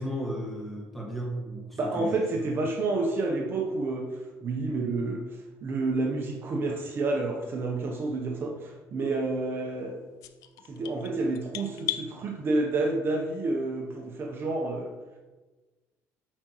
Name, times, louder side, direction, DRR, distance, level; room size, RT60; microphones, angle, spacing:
voice 1, 0.0-2.5, equal, ahead, -3 dB, 1.8 m, -35 dB
voice 2, 1.8-4.1 4.4-5.2 5.6-10.0 10.7-14.9, right 2 dB, 40° right, 0 dB, 0.9 m, -29 dB
sound 1, 10.2-12.1, left 13 dB, 80° left, 0.4 m, -36 dB
8.6 x 5.0 x 3.0 m, 1.2 s
cardioid pair, 125°, 6 cm